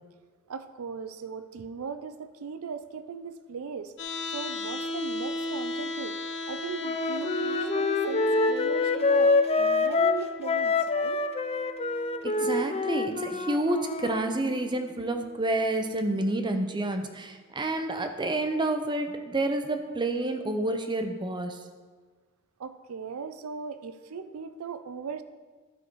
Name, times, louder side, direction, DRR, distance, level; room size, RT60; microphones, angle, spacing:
voice 1, 0.5-3.9 4.2-6.2 6.5-11.2 22.6-25.2, right 5 dB, 80° right, 11 dB, 0.5 m, -38 dB
sound 1, 4.0-16.0, left 1 dB, 55° left, 0.9 m, -37 dB
Wind instrument woodwind instrument, 6.8-14.2, left 3 dB, 30° left, 0.4 m, -26 dB
voice 2, 12.2-21.6, right 2 dB, 20° right, 6 dB, 0.7 m, -29 dB
13.0 x 4.8 x 4.6 m, 1.4 s
head